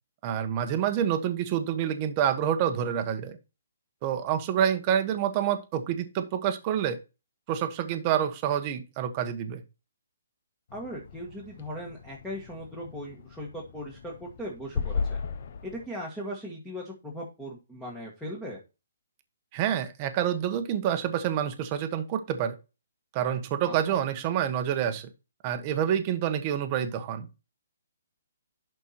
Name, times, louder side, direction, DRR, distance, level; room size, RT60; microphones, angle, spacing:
voice 1, 0.2-3.4 4.0-7.0 7.5-9.6 19.5-22.6 23.1-25.1 25.4-27.3, right 9 dB, 25° right, 8 dB, 1.2 m, -27 dB
sound 1, 10.7-15.9, left 5 dB, 45° left, 0.9 m, -36 dB
voice 2, 10.7-15.2 15.6-18.6 23.7-23.8, equal, ahead, -4 dB, 1.7 m, -38 dB
11.5 x 4.5 x 4.4 m, 0.28 s
hypercardioid pair, 170°, 0 cm